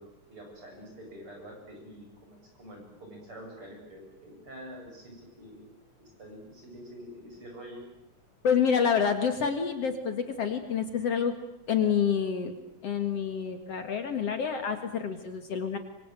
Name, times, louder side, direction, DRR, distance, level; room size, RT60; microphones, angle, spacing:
voice 1, 0.0-5.7 6.2-7.8, equal, 45° right, 1 dB, 8.9 m, -46 dB
voice 2, 8.4-11.3 11.7-12.5 12.8-15.8, left 7 dB, 55° left, 8 dB, 2.6 m, -28 dB
25.0 x 24.5 x 9.2 m, 0.84 s
omnidirectional pair, 3.5 m